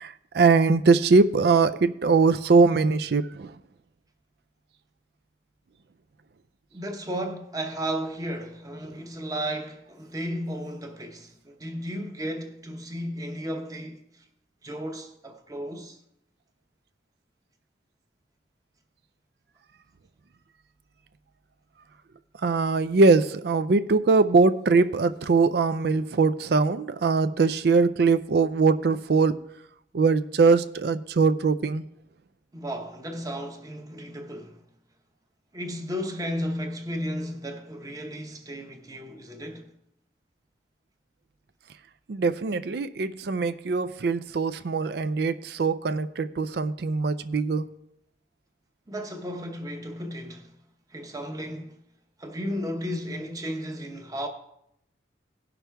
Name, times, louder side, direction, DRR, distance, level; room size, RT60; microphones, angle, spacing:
voice 1, 0.0-3.5 22.4-29.4 29.9-31.8 42.1-47.7, right 4 dB, 60° right, 0.4 m, -22 dB
voice 2, 6.7-14.2 14.6-16.0 32.5-34.6 35.5-39.7 48.9-50.5 50.9-51.8 52.2-54.3, equal, 20° right, 0.9 m, -34 dB
17.0 x 6.0 x 3.4 m
head